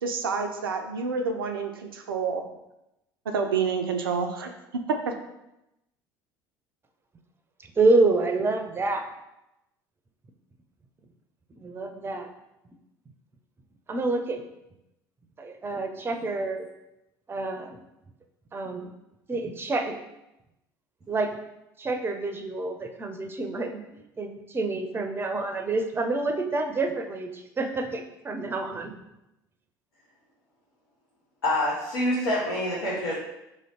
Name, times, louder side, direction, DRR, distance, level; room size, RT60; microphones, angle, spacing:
voice 1, 0.0-2.4 3.3-4.5 4.9-5.2, right 5 dB, 80° right, 5 dB, 0.4 m, -28 dB
voice 2, 7.6-9.1 11.6-12.3 13.9-14.4 15.4-16.7 17.3-17.8 18.5-18.9 19.3-20.0 21.1-21.4 21.8-28.9, right 3 dB, 20° right, 6 dB, 0.5 m, -27 dB
voice 3, 31.4-33.1, left 1 dB, 85° left, -9 dB, 1.0 m, -26 dB
3.1 x 2.8 x 4.0 m, 0.89 s
figure-of-eight pair, 65°, 12 cm